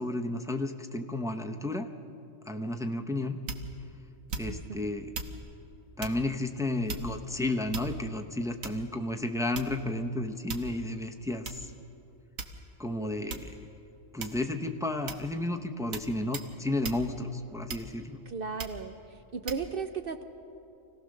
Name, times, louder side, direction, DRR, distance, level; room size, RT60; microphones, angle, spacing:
voice 1, 0.0-1.9 2.5-3.4 4.3-5.1 6.0-11.7 12.8-13.7 14.1-18.2, left 1 dB, 5° right, 3 dB, 0.5 m, -32 dB
sound 1, 3.5-3.8 4.3-4.7 5.1-5.4 6.0-6.2 6.9-7.3 7.7-8.2 8.6-8.9 9.6-9.9 10.5-10.8 11.5-11.6 12.4-12.8 13.3-13.6 14.2-14.5 15.1-15.3 15.9-16.1 16.3-16.5 16.8-17.0 17.7-18.1 18.6-18.8 19.5-19.6, right 4 dB, 80° right, 1.5 m, -38 dB
voice 2, 18.3-19.0 19.3-20.2, right 5 dB, 50° right, 8 dB, 0.8 m, -35 dB
25.0 x 16.5 x 6.5 m, 2.7 s
omnidirectional pair, 1.4 m